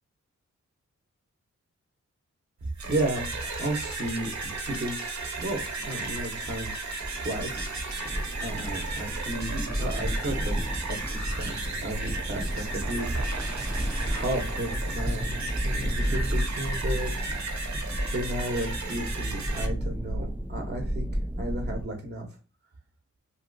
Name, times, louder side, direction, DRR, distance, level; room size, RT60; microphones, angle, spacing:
sound 1, 2.6-19.7, right 3 dB, 65° right, 0.8 m, -35 dB
voice 1, 2.8-6.7 7.2-7.7 8.4-10.6 10.9-13.1 14.0-17.2 18.1-21.1 21.4-22.3, right 1 dB, 35° right, 2 dB, 0.8 m, -33 dB
sound 2, 5.8-21.9, equal, 5° right, 0.3 m, -32 dB
2.9 x 2.7 x 2.5 m, 0.34 s
wide cardioid pair, 100°, 30 cm